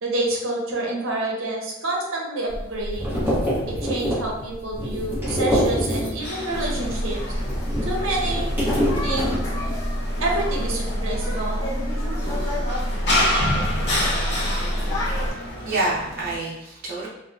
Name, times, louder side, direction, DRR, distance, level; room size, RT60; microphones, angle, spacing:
voice 1, 0.0-3.2 3.7-7.2 7.8-8.5 9.0-9.4 10.2-11.6, right 2 dB, 80° right, -1 dB, 0.6 m, -28 dB
sound 1, 2.5-6.4 6.7-9.8, equal, 10° right, 0.9 m, -26 dB
sound 2, 6.2-16.4, left 1 dB, 55° left, 0.7 m, -29 dB
sound 3, 6.5-15.3, equal, 15° left, 0.4 m, -27 dB
voice 2, 15.6-17.1, right 2 dB, 45° right, -6 dB, 0.7 m, -27 dB
2.7 x 2.1 x 2.4 m, 0.89 s
head